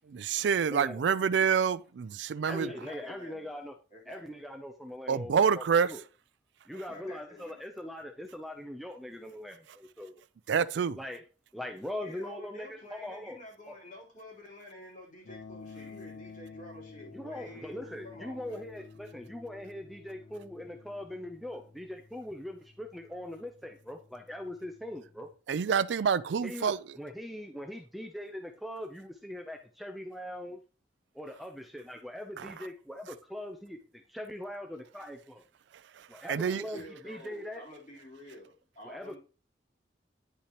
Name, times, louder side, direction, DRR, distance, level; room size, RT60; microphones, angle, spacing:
voice 1, 0.1-2.7 5.1-5.9 10.5-11.0 25.5-26.8 32.4-32.5 36.3-36.6, right 7 dB, 70° right, 0.4 m, -27 dB
voice 2, 0.7-1.0 2.4-3.7 4.1-6.0 6.7-10.2 11.0-11.2 11.5-13.4 13.7-13.8 17.1-25.3 26.4-30.6 31.1-35.4 36.1-37.6 38.8-39.2, left 1 dB, ahead, 0.5 m, -41 dB
voice 3, 2.6-3.6 3.9-4.4 6.9-7.6 12.0-18.6 36.4-39.2, left 1 dB, 45° left, 3.7 m, -49 dB
sound 1, 15.2-25.3, left 4 dB, 60° left, 0.7 m, -52 dB
9.9 x 5.8 x 2.9 m
head